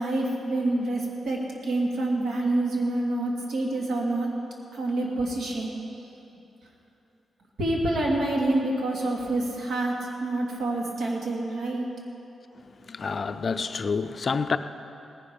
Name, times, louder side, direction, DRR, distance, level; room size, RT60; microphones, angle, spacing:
voice 1, 0.0-4.3 4.7-5.7 7.6-11.9, right 2 dB, 70° right, -2 dB, 2.5 m, -27 dB
voice 2, 12.9-14.6, left 5 dB, 35° left, 10 dB, 0.5 m, -28 dB
18.5 x 10.5 x 5.3 m, 2.8 s
wide cardioid pair, 160°, 0 cm